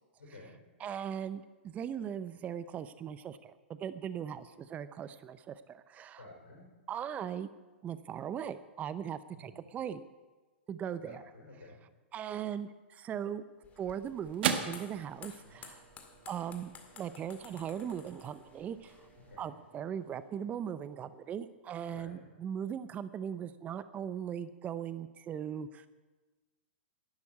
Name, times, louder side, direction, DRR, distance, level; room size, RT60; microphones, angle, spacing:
voice 1, 0.2-0.5 6.2-6.6 9.3-9.6 11.0-11.8 15.4-15.6 19.3-19.6 21.9-22.2, left 2 dB, 90° left, -2 dB, 4.3 m, -52 dB
voice 2, 0.8-6.2 6.9-7.5 7.8-10.1 10.7-11.2 12.1-13.4 13.8-15.9 16.3-19.0 19.4-25.9, right 8 dB, 25° right, 14 dB, 0.6 m, -39 dB
sound 1, 13.1-21.7, right 8 dB, 65° right, 1.4 m, -42 dB
sound 2, 13.6-19.4, left 6 dB, 25° left, 2.0 m, -55 dB
11.5 x 10.5 x 8.4 m, 1.3 s
hypercardioid pair, 120°, 6 cm